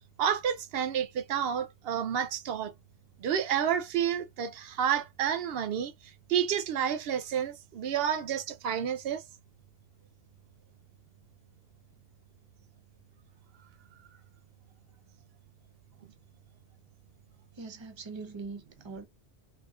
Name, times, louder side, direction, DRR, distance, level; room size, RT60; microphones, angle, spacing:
voice 1, 0.2-2.7 3.2-5.9 6.3-9.2, right 8 dB, 70° right, 0.8 m, -30 dB
voice 2, 17.5-19.1, right 4 dB, 30° right, 0.6 m, -42 dB
3.6 x 2.7 x 2.3 m
omnidirectional pair, 1.1 m